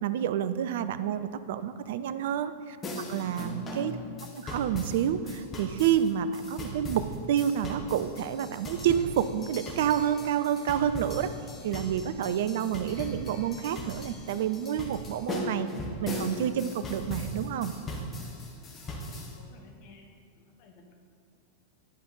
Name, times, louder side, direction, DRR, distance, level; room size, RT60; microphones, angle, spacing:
voice 1, 0.0-2.8 3.1-3.9 4.4-11.3 11.6-15.7 16.0-17.7, right 9 dB, 55° right, 13 dB, 0.3 m, -29 dB
sound 1, 2.8-19.4, left 1 dB, 25° left, 1.3 m, -39 dB
voice 2, 3.8-4.3 19.4-20.1 20.4-21.0, left 4 dB, 45° left, 2 dB, 1.2 m, -53 dB
11.0 x 5.1 x 4.0 m, 2.2 s
figure-of-eight pair, 90°, 0 cm